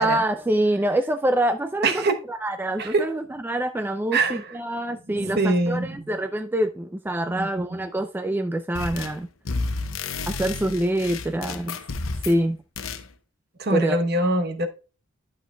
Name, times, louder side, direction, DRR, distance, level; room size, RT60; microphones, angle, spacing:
voice 1, 0.0-9.3 10.3-11.8 12.3-12.6 13.7-14.0, right 1 dB, 10° right, 0.3 m, -25 dB
voice 2, 1.8-2.2 2.8-3.1 4.1-4.4 5.1-6.0 7.3-7.8 13.6-14.7, right 2 dB, 50° right, 0.9 m, -24 dB
sound 1, 8.7-9.2 9.5-12.4 12.8-13.0, left 3 dB, 80° left, 0.9 m, -31 dB
11.5 x 6.4 x 2.2 m
head